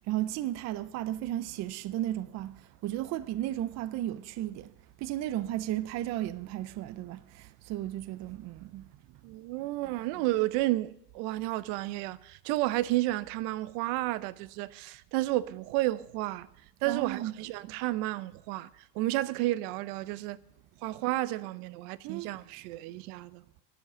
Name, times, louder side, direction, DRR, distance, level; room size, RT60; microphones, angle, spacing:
voice 1, 0.1-4.7 5.0-8.9 16.9-17.3 22.0-22.3, right 13 dB, 35° right, 0.5 m, -34 dB
voice 2, 9.2-16.5 16.8-18.7 18.9-20.4 20.8-23.4, right 17 dB, 70° right, 0.8 m, -31 dB
11.0 x 10.5 x 6.7 m
cardioid pair, 145°, 46 cm